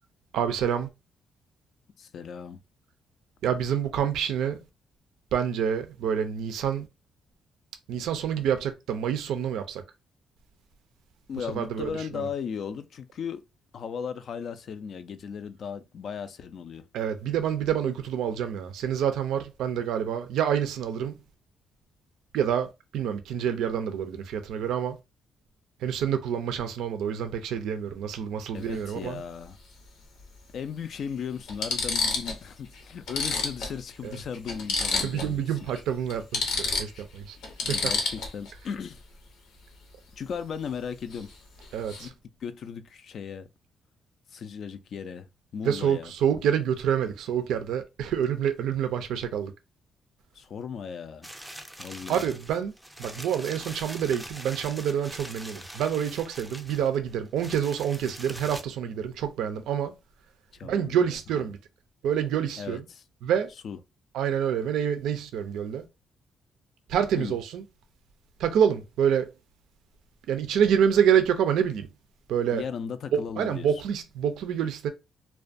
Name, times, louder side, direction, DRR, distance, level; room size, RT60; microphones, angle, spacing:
voice 1, 0.3-0.9 3.4-4.6 5.3-6.9 7.9-9.8 11.4-12.3 16.9-21.2 22.3-25.0 25.8-29.2 34.0-34.2 35.0-37.4 37.7-37.9 41.7-42.1 45.6-49.5 52.1-52.7 53.0-59.9 60.6-61.6 62.0-62.8 63.2-63.5 64.1-65.9 66.9-67.6 68.4-69.3 70.3-71.9 72.3-72.6 73.1-74.9, right 8 dB, 85° right, 0.3 m, -27 dB
voice 2, 2.0-2.6 11.3-13.4 13.7-16.8 28.5-29.6 30.5-35.4 37.6-39.0 40.2-41.3 42.0-42.1 42.4-43.5 44.3-45.3 45.5-46.1 50.3-51.3 51.8-52.2 60.5-61.4 62.6-63.0 63.6-63.8 67.2-67.4 72.5-73.7, left 7 dB, 60° left, 0.3 m, -36 dB
sound 1, 28.5-28.7 30.2-30.3 31.0-31.1 31.5-32.4 32.7-32.8 33.1-35.4 35.7-35.8 36.1-38.5 41.1-41.3 41.6-42.1, left 4 dB, 85° left, 0.7 m, -29 dB
sound 2, 51.2-58.6, right 1 dB, 5° right, 0.4 m, -43 dB
2.4 x 2.1 x 2.5 m
cardioid pair, 90°, 0 cm